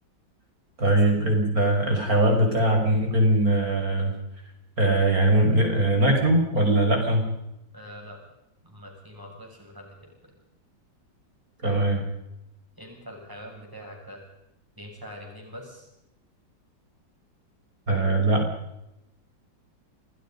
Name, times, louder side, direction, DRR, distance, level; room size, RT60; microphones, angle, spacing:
voice 1, 0.8-4.1 4.8-7.2 11.6-12.0 17.9-18.4, right 1 dB, 45° right, 2 dB, 6.0 m, -21 dB
voice 2, 7.7-8.2 8.6-10.4 11.6-11.9 12.8-14.2 14.8-15.9, equal, 10° right, 0 dB, 7.4 m, -43 dB
29.0 x 20.0 x 5.4 m, 0.87 s
omnidirectional pair, 2.1 m